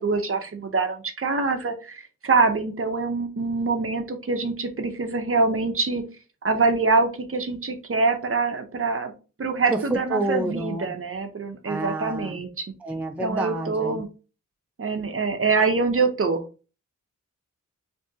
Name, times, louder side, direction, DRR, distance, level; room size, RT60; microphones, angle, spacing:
voice 1, 0.0-6.0 6.4-9.1 9.4-12.7 13.2-14.1 14.8-16.4, right 4 dB, 45° right, 5 dB, 0.6 m, -24 dB
voice 2, 9.7-11.0 11.7-12.4 12.8-14.0, right 1 dB, 5° right, 4 dB, 0.3 m, -29 dB
3.4 x 2.6 x 2.6 m, 0.33 s
wide cardioid pair, 110°, 32 cm